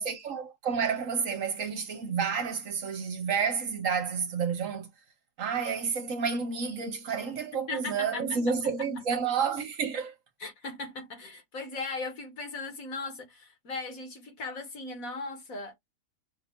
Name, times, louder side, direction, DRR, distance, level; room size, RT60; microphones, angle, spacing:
voice 1, 0.0-4.9 5.4-10.1, right 6 dB, 60° right, 1.1 m, -30 dB
voice 2, 7.7-8.4 10.4-15.7, left 3 dB, 60° left, 2.0 m, -38 dB
5.7 x 2.7 x 3.4 m
omnidirectional pair, 1.7 m